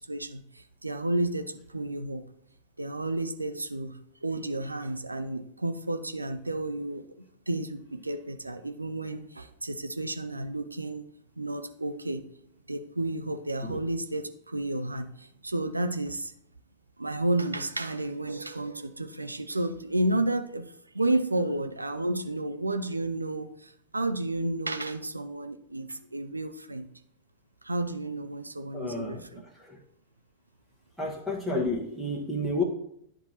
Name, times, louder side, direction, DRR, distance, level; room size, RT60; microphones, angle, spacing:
voice 1, 0.0-2.2 2.8-3.9 4.2-11.1 11.4-12.2 12.7-16.3 17.0-26.9 27.6-29.4, right 1 dB, 80° right, 8 dB, 0.4 m, -31 dB
voice 2, 28.7-29.8 31.0-32.6, left 2 dB, 5° right, -2 dB, 1.1 m, -31 dB
10.5 x 4.0 x 2.8 m, 0.71 s
figure-of-eight pair, 90°, 0 cm